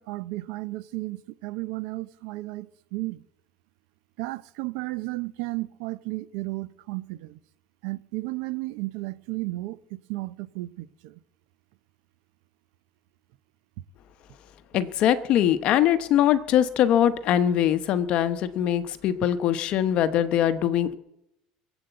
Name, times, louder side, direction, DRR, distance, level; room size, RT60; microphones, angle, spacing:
voice 1, 0.0-3.2 4.2-7.4 7.8-9.8 10.1-11.2, right 20 dB, 65° right, 0.7 m, -33 dB
voice 2, 14.7-20.9, left 10 dB, 40° left, 0.9 m, -22 dB
22.0 x 8.1 x 7.9 m
cardioid pair, 175°, 3 cm